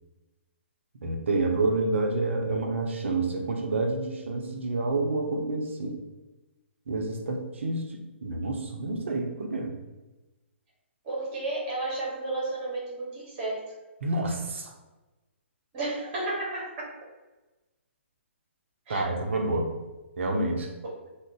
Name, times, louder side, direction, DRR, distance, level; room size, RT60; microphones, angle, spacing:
voice 1, 1.0-6.0 6.9-9.7 14.0-14.7 18.9-19.7 20.2-20.7, right 2 dB, 70° right, 2 dB, 0.6 m, -28 dB
voice 2, 11.0-13.6 15.7-16.7 18.9-19.0, right 2 dB, 30° right, -4 dB, 1.2 m, -32 dB
2.4 x 2.0 x 3.7 m, 1.1 s
hypercardioid pair, 140°, 7 cm